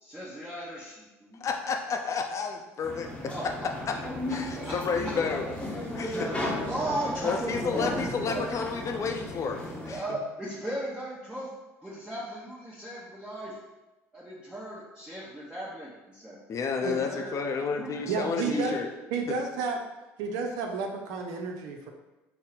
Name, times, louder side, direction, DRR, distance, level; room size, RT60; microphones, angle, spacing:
voice 1, 0.0-1.4 3.3-3.4 4.6-4.7 6.1-6.3 6.7-8.4 9.8-11.5 11.8-13.5 14.1-16.4 16.8-17.4 17.8-18.8, right 1 dB, 10° right, -7 dB, 0.9 m, -36 dB
voice 2, 1.3-3.1 3.9-4.0 4.3-6.3 7.2-10.2 16.5-18.9, left 5 dB, 45° left, 3 dB, 0.6 m, -31 dB
sound 1, 2.8-10.0, left 1 dB, 15° left, 0.9 m, -35 dB
voice 3, 18.1-18.8 19.1-19.8 20.2-21.9, right 4 dB, 75° right, 3 dB, 0.5 m, -31 dB
3.9 x 2.0 x 4.0 m, 1.1 s
hypercardioid pair, 70°, 7 cm